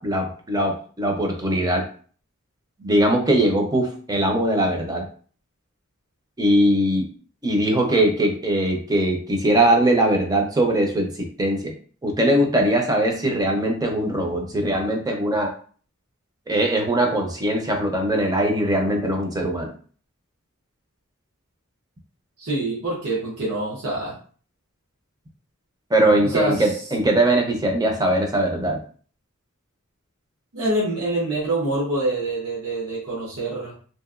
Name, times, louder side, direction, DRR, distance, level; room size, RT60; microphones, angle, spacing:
voice 1, 0.0-1.8 2.8-5.0 6.4-7.1 7.4-11.7 12.0-15.5 16.5-19.7 25.9-28.8, right 1 dB, 15° right, 1 dB, 0.5 m, -21 dB
voice 2, 22.4-24.1 26.2-26.7 30.5-33.7, right 2 dB, 85° right, -5 dB, 1.0 m, -25 dB
2.8 x 2.6 x 2.4 m, 0.44 s
head